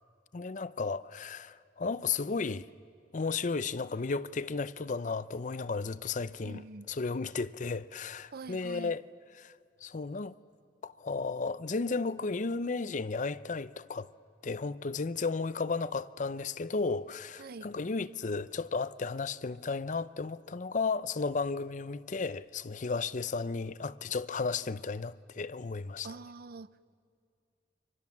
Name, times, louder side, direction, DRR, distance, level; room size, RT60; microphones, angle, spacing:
voice 1, 0.3-2.7 3.1-6.6 6.9-9.0 9.3-9.5 9.8-10.3 10.8-14.1 14.4-26.1, left 4 dB, 45° left, 0.6 m, -34 dB
voice 2, 6.4-6.9 8.3-8.9 17.4-17.7 26.0-26.9, right 3 dB, 60° right, 0.6 m, -45 dB
30.0 x 24.5 x 7.2 m
head